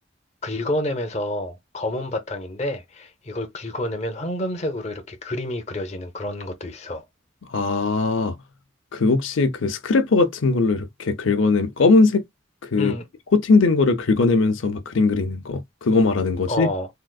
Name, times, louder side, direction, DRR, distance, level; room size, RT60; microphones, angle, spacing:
voice 1, 0.4-7.0 12.7-13.1 16.5-16.9, left 1 dB, 35° left, 0.6 m, -29 dB
voice 2, 7.5-8.4 8.9-12.2 12.6-12.9 13.3-16.7, left 3 dB, 80° left, 0.6 m, -20 dB
3.7 x 2.5 x 2.2 m
head